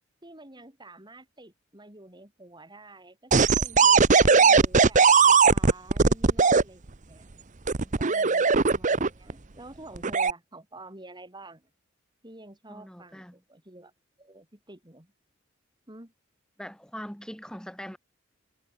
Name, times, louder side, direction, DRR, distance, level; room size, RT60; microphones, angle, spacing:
voice 1, 0.2-7.3 8.0-11.7 12.2-13.9 14.2-15.1 15.9-16.1, right 2 dB, 20° right, 5.1 m, -49 dB
sound 1, 3.3-6.6 7.7-9.3 10.0-10.3, right 5 dB, 40° right, 0.9 m, -19 dB
voice 2, 12.7-13.4 16.6-18.0, equal, 5° left, 2.4 m, -41 dB
head